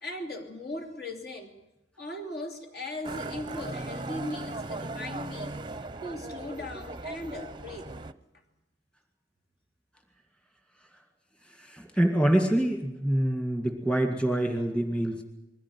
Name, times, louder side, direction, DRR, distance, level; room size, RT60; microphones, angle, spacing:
voice 1, 0.0-1.5 2.0-5.6 6.0-7.9, left 1 dB, 60° left, 4 dB, 3.1 m, -38 dB
Motorcycle, 3.0-8.1, right 2 dB, 25° right, 0.7 m, -38 dB
voice 2, 11.4-15.2, right 1 dB, 5° left, 4 dB, 2.1 m, -26 dB
21.5 x 15.5 x 9.7 m, 0.96 s
head